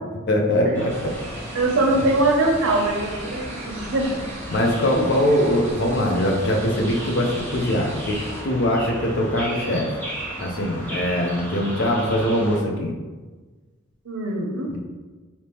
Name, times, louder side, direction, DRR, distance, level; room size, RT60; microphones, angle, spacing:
voice 1, 0.3-1.1 1.5-1.6 4.5-8.2 8.4-9.9 10.4-12.9 14.7-14.8, left 1 dB, 60° left, 1 dB, 0.6 m, -22 dB
sound 1, 0.7-12.6, equal, 10° left, 0.7 m, -35 dB
sound 2, 0.9-8.4, right 1 dB, 35° right, 0.6 m, -39 dB
voice 2, 1.5-4.0 14.1-14.8, right 2 dB, 85° right, -1 dB, 0.5 m, -22 dB
2.9 x 2.8 x 3.3 m, 1.3 s
head